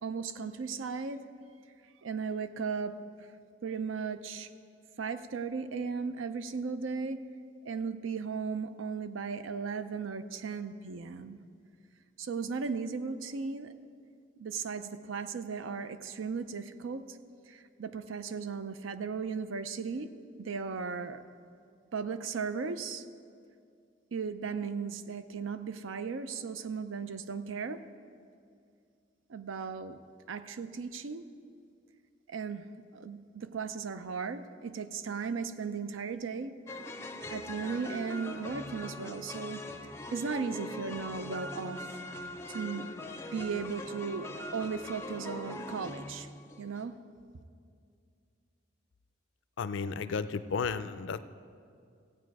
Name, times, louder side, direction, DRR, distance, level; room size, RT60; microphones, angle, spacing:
voice 1, 0.0-1.2 2.0-3.0 3.6-4.5 5.0-7.2 7.6-11.4 12.2-13.7 14.4-17.2 17.5-20.1 20.4-21.2 21.9-23.0 24.1-27.8 29.3-30.0 30.3-31.3 32.3-36.5 37.3-39.6 40.1-41.9 42.5-42.9 43.3-46.3 46.6-47.0, right 5 dB, 85° right, 11 dB, 0.5 m, -36 dB
sound 1, 36.7-46.8, left 1 dB, 15° left, 0.4 m, -42 dB
voice 2, 49.6-51.2, left 5 dB, 70° left, 13 dB, 0.4 m, -33 dB
15.5 x 8.6 x 4.7 m, 2.3 s
head